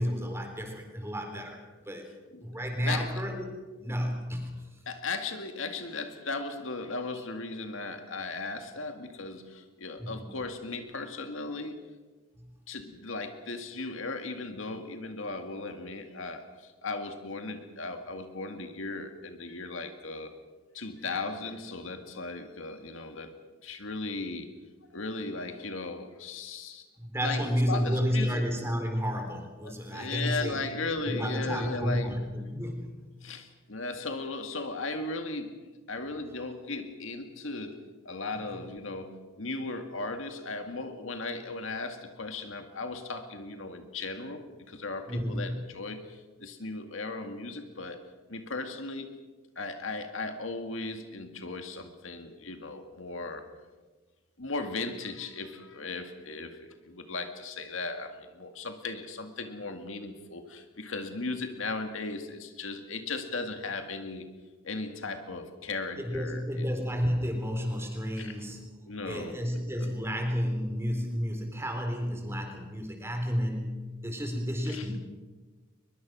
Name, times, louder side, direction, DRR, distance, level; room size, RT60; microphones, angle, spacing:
voice 1, 0.0-1.6 1.9-2.1 2.4-3.5 3.8-4.6 10.0-10.3 12.4-12.5 27.0-30.6 31.0-33.0 45.1-45.6 66.0-68.6 69.1-73.7 74.0-75.0, equal, 15° right, 3 dB, 3.8 m, -31 dB
voice 2, 4.9-11.8 12.7-20.3 20.7-23.3 23.6-24.5 24.9-26.9 27.2-28.4 29.6-32.1 33.2-35.6 35.9-48.0 48.3-49.1 49.6-53.4 54.4-56.6 56.8-64.3 64.6-66.6 68.2-68.3 68.9-69.9 74.7-74.9, left 3 dB, 70° left, 6 dB, 2.1 m, -37 dB
22.5 x 22.0 x 6.2 m, 1.3 s
head